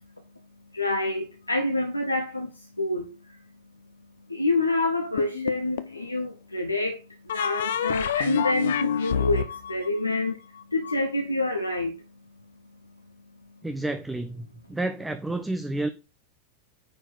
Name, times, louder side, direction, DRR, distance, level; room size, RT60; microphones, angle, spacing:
voice 1, 0.7-3.4 4.3-10.4 10.7-12.0, left 2 dB, 85° left, 1.0 m, -27 dB
sound 1, 5.2-6.0 7.3-10.9, left 9 dB, 60° left, 0.7 m, -28 dB
voice 2, 13.6-15.9, right 2 dB, 5° right, 0.7 m, -30 dB
9.8 x 4.4 x 4.0 m
figure-of-eight pair, 90°, 0 cm